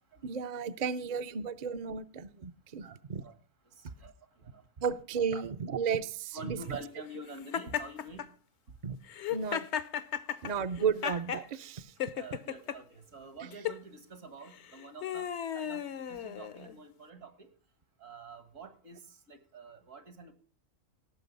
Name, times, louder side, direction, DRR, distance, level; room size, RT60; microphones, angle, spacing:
voice 1, 0.2-3.2 4.8-6.8 8.8-9.0 9.3-9.7 10.4-11.9, right 6 dB, 45° right, 10 dB, 0.6 m, -34 dB
voice 2, 3.7-4.7 5.3-5.4 6.3-8.3 12.2-17.5 18.0-20.3, right 2 dB, 75° right, 10 dB, 1.9 m, -48 dB
Laughter, 7.5-8.3 9.1-11.5 12.0-12.8 13.5-13.8 14.5-16.7, left 9 dB, 65° left, 0.9 m, -35 dB
17.5 x 6.6 x 5.3 m, 0.39 s
omnidirectional pair, 1.4 m